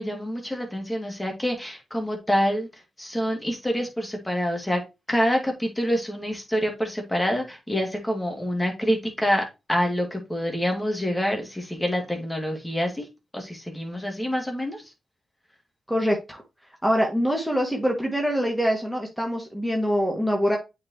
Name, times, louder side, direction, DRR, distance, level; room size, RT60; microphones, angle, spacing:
voice 1, 0.0-4.8 5.1-13.1 13.3-14.9, equal, 15° left, 2.4 m, -26 dB
voice 2, 15.9-16.4 16.8-20.6, equal, 5° right, 2.1 m, -24 dB
8.4 x 4.6 x 3.0 m
supercardioid pair, 50°, 0 cm